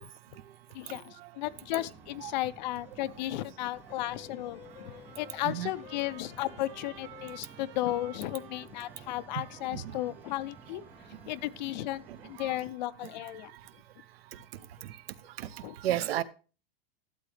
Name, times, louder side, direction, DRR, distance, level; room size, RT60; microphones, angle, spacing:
voice 1, 0.7-10.8 11.3-13.5 15.6-15.7, left 15 dB, 50° left, 0.5 m, -35 dB
sound 1, 1.4-12.7, right 4 dB, 5° right, 0.3 m, -54 dB
sound 2, 3.9-7.5, left 10 dB, 70° left, 1.0 m, -52 dB
Trumpet, 4.6-11.7, right 10 dB, 55° right, 2.7 m, -54 dB
voice 2, 12.1-12.5 14.8-15.0 15.4-15.5 15.8-16.2, right 12 dB, 80° right, 0.8 m, -33 dB
12.5 x 7.3 x 3.2 m
supercardioid pair, 165°, 30 cm